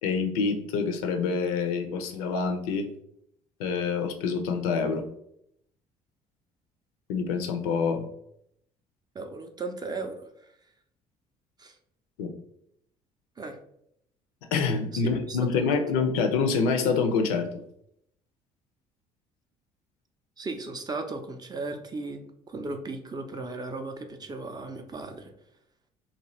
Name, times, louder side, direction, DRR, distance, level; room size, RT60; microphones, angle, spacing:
voice 1, 0.0-2.9 3.6-5.0 7.1-8.1 12.2-12.3 14.5-17.5, left 5 dB, 70° left, 5 dB, 0.4 m, -26 dB
voice 2, 9.1-10.5 11.6-11.8 13.4-13.6 14.9-15.0 15.3-15.4 15.7-15.8 20.4-25.3, right 3 dB, 20° right, 6 dB, 0.4 m, -36 dB
2.7 x 2.3 x 3.0 m, 0.73 s
figure-of-eight pair, 55°, 19 cm